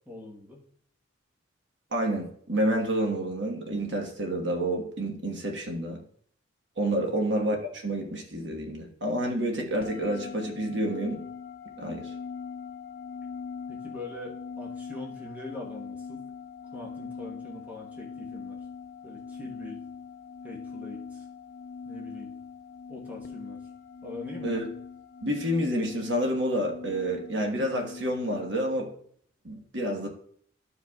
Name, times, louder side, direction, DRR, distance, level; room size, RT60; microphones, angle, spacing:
voice 1, 0.1-0.7 6.9-7.1 13.7-16.2 16.7-18.6 19.0-19.8 20.4-21.3 21.8-22.3 22.9-23.6 24.0-24.5, left 1 dB, 10° right, -3 dB, 1.1 m, -43 dB
voice 2, 1.9-6.0 6.8-11.2 11.8-12.1 24.4-24.7 25.2-28.9 29.4-30.1, right 1 dB, 65° right, 2 dB, 1.3 m, -29 dB
sound 1, 9.8-28.5, left 5 dB, 50° left, 0.5 m, -41 dB
13.0 x 4.9 x 2.3 m, 0.62 s
head